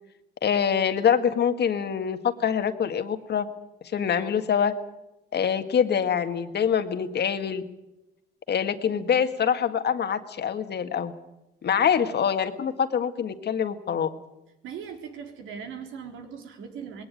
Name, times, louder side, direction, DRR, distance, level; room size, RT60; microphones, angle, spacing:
voice 1, 0.4-3.5 3.8-4.7 5.3-7.6 8.5-11.1 11.6-14.1, left 7 dB, 55° left, 8 dB, 1.8 m, -25 dB
voice 2, 14.6-17.0, right 7 dB, 85° right, 4 dB, 3.7 m, -39 dB
20.0 x 18.0 x 9.2 m, 0.95 s
cardioid pair, 90°, 20 cm